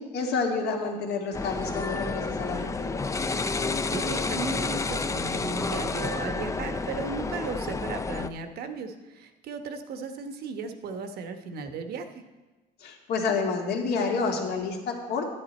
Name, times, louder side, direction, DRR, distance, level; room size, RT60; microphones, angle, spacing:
voice 1, 0.0-3.0 12.8-15.3, left 4 dB, 70° left, 1 dB, 2.1 m, -29 dB
sound 1, 1.3-8.3, left 3 dB, 20° left, 0.5 m, -30 dB
voice 2, 3.9-12.2, right 5 dB, 70° right, 7 dB, 1.1 m, -36 dB
11.0 x 10.0 x 4.3 m, 1.2 s
cardioid pair, 110°, 17 cm